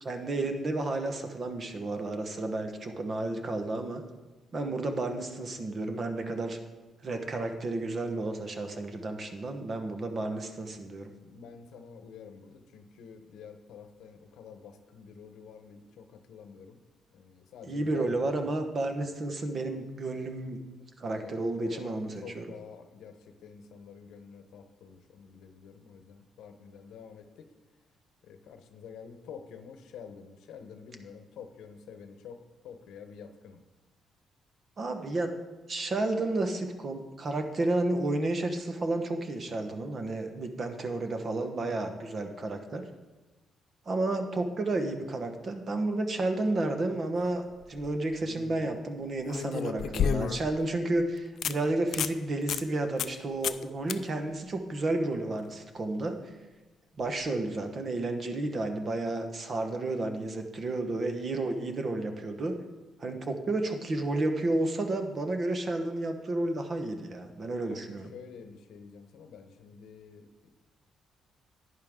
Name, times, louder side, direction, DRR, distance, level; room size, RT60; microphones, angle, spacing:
voice 1, 0.0-4.0 4.5-6.6 7.0-11.1 17.6-20.6 21.0-22.5 34.8-35.3 35.7-42.8 43.9-56.2 57.0-62.6 63.0-68.1, right 2 dB, 40° right, 6 dB, 1.2 m, -31 dB
voice 2, 11.2-16.8 17.1-18.4 21.1-27.5 28.2-33.6 48.2-48.8 67.7-70.5, left 6 dB, 85° left, 7 dB, 0.9 m, -48 dB
sound 1, 47.5-47.9 49.3-50.6 51.0-51.1 51.4-51.5 51.9-52.2 52.5-52.6 53.0-53.2 53.4-53.6 53.9-54.0 57.1-57.2, left 8 dB, 65° left, 0.4 m, -30 dB
11.0 x 9.5 x 3.7 m, 1.2 s
cardioid pair, 90°, 0 cm